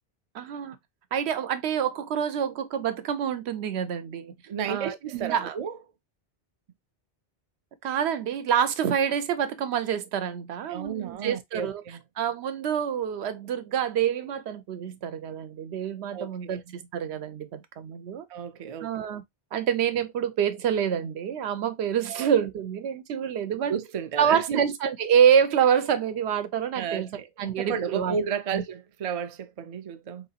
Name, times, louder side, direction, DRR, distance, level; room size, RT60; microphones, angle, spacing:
voice 1, 0.3-0.8 1.1-4.3 4.7-5.5 7.8-18.3 18.8-19.2 19.5-23.7 24.2-28.2 28.5-28.6, right 8 dB, 85° right, 0.9 m, -27 dB
voice 2, 4.5-5.8 10.7-12.0 16.1-16.6 18.3-18.9 22.1-22.3 23.7-24.6 26.7-30.3, right 7 dB, 55° right, 0.4 m, -33 dB
3.9 x 2.9 x 2.7 m
omnidirectional pair, 1.1 m